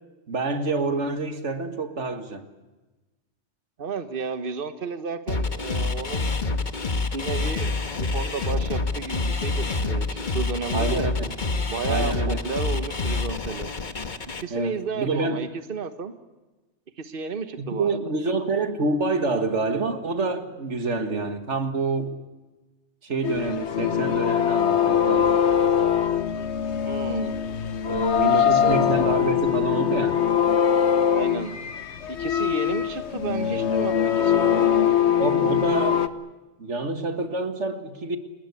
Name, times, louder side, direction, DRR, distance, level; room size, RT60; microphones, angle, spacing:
voice 1, 0.3-2.4 10.7-11.3 11.9-12.4 14.5-15.5 17.7-22.2 23.0-25.3 28.1-30.2 35.2-36.1 36.6-38.2, right 3 dB, 85° right, 7 dB, 2.2 m, -27 dB
voice 2, 3.8-6.3 7.1-11.1 11.7-13.7 14.4-16.2 17.0-18.0 26.9-27.3 27.9-29.1 31.1-31.6 32.1-34.9, right 5 dB, 50° right, 9 dB, 1.4 m, -32 dB
sound 1, 5.3-14.4, left 3 dB, 45° left, 1.4 m, -27 dB
sound 2, 23.2-36.1, left 8 dB, 75° left, 1.3 m, -22 dB
29.0 x 20.5 x 8.4 m, 1.2 s
omnidirectional pair, 1.2 m